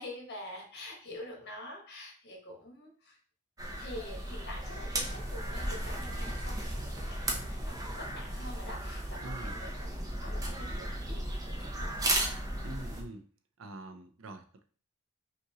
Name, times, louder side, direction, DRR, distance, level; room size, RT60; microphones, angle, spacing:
voice 1, 0.0-3.2 3.8-12.0, left 1 dB, 50° left, 0 dB, 1.2 m, -46 dB
sound 1, 3.6-13.0, right 1 dB, 15° right, 0.7 m, -35 dB
voice 2, 9.2-9.6 12.6-13.3 13.6-14.6, right 2 dB, 70° right, 7 dB, 0.6 m, -45 dB
5.5 x 2.6 x 2.8 m, 0.42 s
head